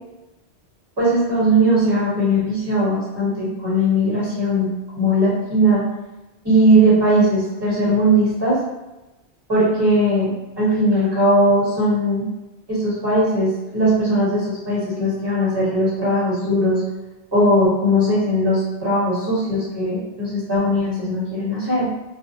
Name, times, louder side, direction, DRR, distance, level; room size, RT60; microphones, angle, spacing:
voice 1, 1.0-4.7 5.0-5.8 6.4-8.6 9.5-10.3 10.6-12.3 12.7-16.8 17.3-21.9, equal, 25° right, -9 dB, 1.1 m, -19 dB
2.3 x 2.0 x 2.7 m, 1.0 s
omnidirectional pair, 1.1 m